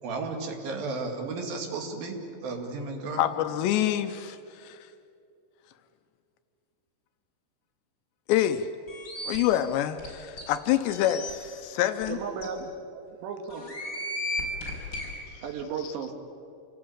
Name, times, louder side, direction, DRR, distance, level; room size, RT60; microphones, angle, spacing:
voice 1, 0.0-3.2, right 3 dB, 60° right, 2 dB, 3.8 m, -34 dB
voice 2, 3.2-4.8 8.3-8.7 9.2-12.2 15.3-15.4 15.8-15.9, left 12 dB, 80° left, 9 dB, 2.9 m, -27 dB
sound 1, 8.9-9.4 10.0-10.1 10.4-10.5 10.9-11.3 12.0-12.1 12.4-12.5 13.5-15.1, left 1 dB, 30° left, 5.6 m, -34 dB
voice 3, 12.1-13.7 15.0-15.1 15.4-16.1, right 6 dB, 75° right, 3 dB, 3.9 m, -35 dB
28.0 x 18.5 x 8.8 m, 2.5 s
omnidirectional pair, 5.1 m